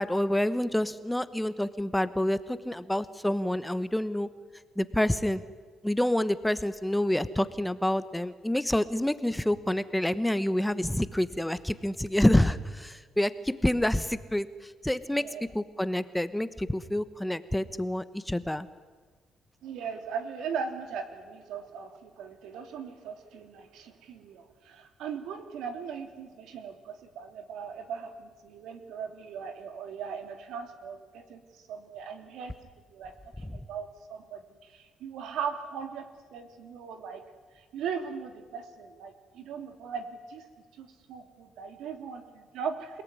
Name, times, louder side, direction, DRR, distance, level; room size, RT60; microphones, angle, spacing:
voice 1, 0.0-4.3 4.8-5.4 5.8-15.3 15.5-18.7, left 1 dB, 5° left, 13 dB, 1.1 m, -28 dB
voice 2, 15.1-15.4 19.6-32.5 32.9-37.2 37.5-40.5 40.8-43.0, right 6 dB, 85° right, 7 dB, 3.0 m, -39 dB
28.5 x 18.0 x 9.7 m, 1.4 s
cardioid pair, 90°, 0 cm